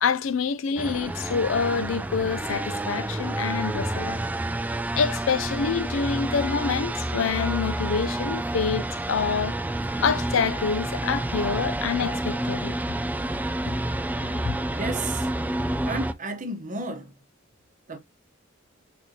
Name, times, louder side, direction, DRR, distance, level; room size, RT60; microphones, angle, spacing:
voice 1, 0.0-4.2 4.9-9.5 10.0-12.8 14.2-14.6, left 6 dB, 85° left, 0.5 m, -27 dB
sound 1, 0.8-16.1, right 1 dB, 10° right, 0.3 m, -29 dB
voice 2, 14.8-15.3 15.9-17.1 17.9-18.0, right 3 dB, 40° right, 0.9 m, -32 dB
4.3 x 4.2 x 2.8 m
head